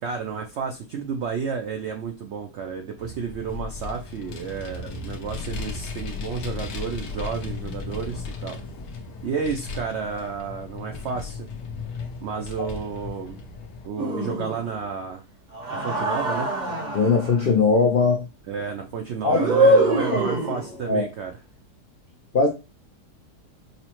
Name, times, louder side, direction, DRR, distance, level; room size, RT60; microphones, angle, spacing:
voice 1, 0.0-8.6 9.2-11.5 12.2-13.4 13.8-15.2 15.8-16.5 18.5-21.4, right 6 dB, 80° right, 0.6 m, -31 dB
Vehicle, 3.0-13.9, left 4 dB, 85° left, 1.3 m, -35 dB
sound 1, 14.0-14.8 15.5-17.3 19.3-20.8, right 1 dB, 40° right, 0.7 m, -23 dB
voice 2, 16.9-18.2 19.2-19.4 19.9-20.2 20.9-21.0 22.3-22.5, left 4 dB, 70° left, 0.5 m, -20 dB
5.4 x 2.1 x 2.9 m
omnidirectional pair, 1.7 m